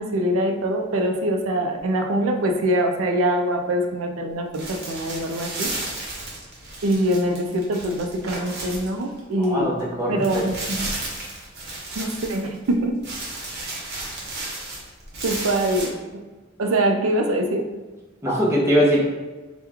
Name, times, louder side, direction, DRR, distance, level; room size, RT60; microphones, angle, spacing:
voice 1, 0.0-5.7 6.8-9.7 10.1-10.9 12.0-13.0 15.2-16.2 16.6-17.7, right 1 dB, 75° right, 4 dB, 0.4 m, -23 dB
sound 1, 4.5-9.4 9.8-9.9 10.2-12.7 13.0-15.9, right 2 dB, 50° right, 0.9 m, -33 dB
voice 2, 9.4-10.5 18.2-19.0, equal, 15° right, -5 dB, 0.7 m, -21 dB
3.0 x 2.2 x 3.5 m, 1.2 s
head